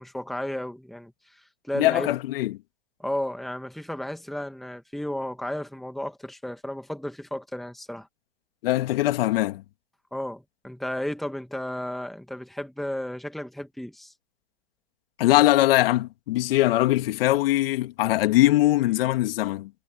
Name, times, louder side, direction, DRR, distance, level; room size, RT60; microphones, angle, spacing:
voice 1, 0.0-2.1 3.0-8.1 10.1-14.1, left 1 dB, ahead, 2.0 m, -33 dB
voice 2, 1.7-2.6 8.6-9.6 15.2-19.7, left 16 dB, 55° left, 2.7 m, -21 dB
hypercardioid pair, 130°, 33 cm